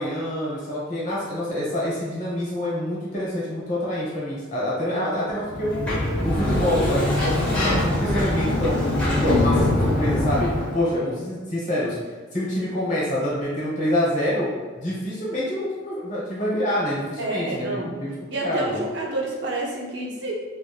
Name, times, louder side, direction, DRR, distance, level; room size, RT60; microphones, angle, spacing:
voice 1, 0.0-5.9 6.2-8.9 9.2-11.9 12.3-14.5 14.8-18.1 18.4-18.8, left 1 dB, 35° left, -7 dB, 1.1 m, -26 dB
Sliding door, 5.5-10.8, left 1 dB, 5° left, 0.7 m, -22 dB
voice 2, 7.0-7.6 17.2-18.0 18.3-20.3, right 2 dB, 55° right, -1 dB, 0.5 m, -29 dB
3.3 x 2.6 x 2.2 m, 1.4 s
head